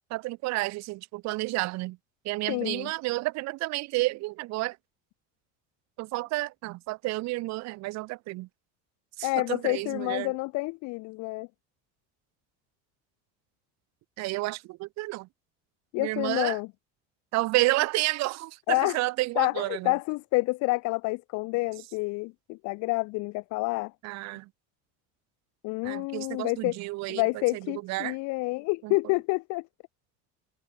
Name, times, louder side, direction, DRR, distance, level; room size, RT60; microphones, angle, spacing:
voice 1, 0.1-2.0 2.3-4.8 6.0-8.5 9.2-10.3 14.2-15.3 16.0-16.6 17.3-19.9 24.0-24.5 25.8-27.2 27.5-28.2 28.8-28.9, right 21 dB, 60° right, 1.6 m, -30 dB
voice 2, 2.5-2.9 9.2-11.5 15.9-16.7 18.7-19.0 19.4-23.9 25.6-26.8 27.1-29.7, left 24 dB, 65° left, 1.0 m, -28 dB
cardioid pair, 175°, 30 cm